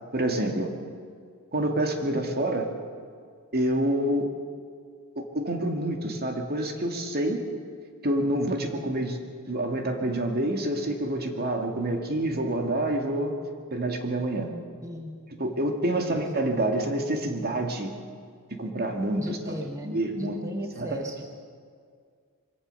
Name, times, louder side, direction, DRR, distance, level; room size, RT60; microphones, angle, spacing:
voice 1, 0.1-0.7 1.5-2.7 3.5-4.3 5.2-7.4 8.0-9.2 9.5-13.3 13.7-14.5 15.4-17.9 18.6-20.4 20.8-21.0, right 1 dB, 45° right, 4 dB, 2.1 m, -27 dB
voice 2, 14.8-15.2 15.9-16.2 19.2-21.2, equal, 15° right, 2 dB, 1.4 m, -37 dB
23.0 x 17.0 x 6.8 m, 2.1 s
head